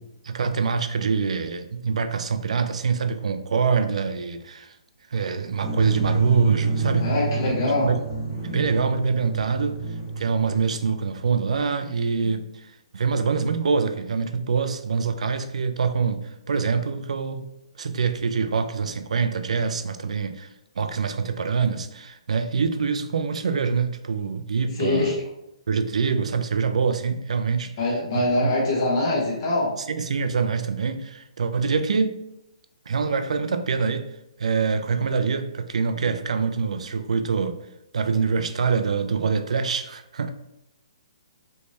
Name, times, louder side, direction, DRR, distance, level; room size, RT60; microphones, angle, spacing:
voice 1, 0.0-4.7 5.1-7.1 7.8-8.0 8.4-9.8 10.2-17.5 17.8-20.5 20.8-25.1 25.7-27.7 28.4-28.5 29.9-32.2 32.9-34.1 34.4-37.6 37.9-40.3, right 5 dB, 70° right, 0.4 m, -25 dB
sound 1, 5.6-11.0, right 4 dB, 5° right, 0.9 m, -27 dB
voice 2, 7.0-7.9 24.8-25.1 27.8-29.7, left 2 dB, 35° left, 1.1 m, -23 dB
3.3 x 3.1 x 2.7 m
hypercardioid pair, 175°, 4 cm